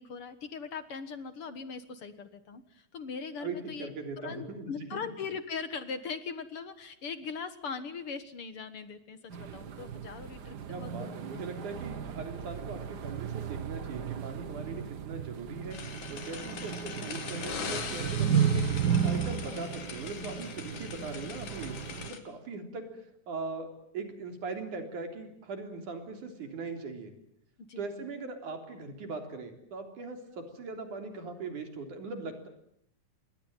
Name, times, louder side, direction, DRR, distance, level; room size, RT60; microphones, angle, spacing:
voice 1, 0.0-3.9 4.2-11.4 27.6-27.8, left 5 dB, 55° left, 11 dB, 2.1 m, -40 dB
voice 2, 3.4-4.9 10.7-18.7 19.0-22.9 23.3-27.2 27.8-32.5, right 3 dB, 85° right, 6 dB, 5.1 m, -40 dB
sound 1, 9.3-22.1, right 7 dB, 50° right, 1.2 m, -34 dB
sound 2, 15.7-22.2, left 6 dB, 85° left, 3.9 m, -41 dB
28.0 x 21.5 x 9.1 m, 0.72 s
omnidirectional pair, 3.4 m